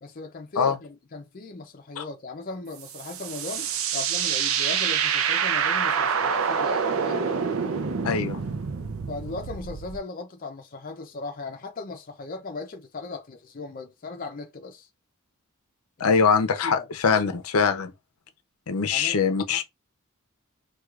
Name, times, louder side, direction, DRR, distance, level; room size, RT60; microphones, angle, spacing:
voice 1, 0.0-7.3 9.1-14.9 16.0-16.2 16.6-16.9 18.9-19.2, left 3 dB, 40° left, 0.5 m, -38 dB
sound 1, 2.8-10.0, right 6 dB, 70° right, 0.5 m, -26 dB
voice 2, 8.0-8.4 16.0-17.9 18.7-19.6, left 5 dB, 85° left, 0.6 m, -23 dB
4.5 x 2.3 x 2.4 m
head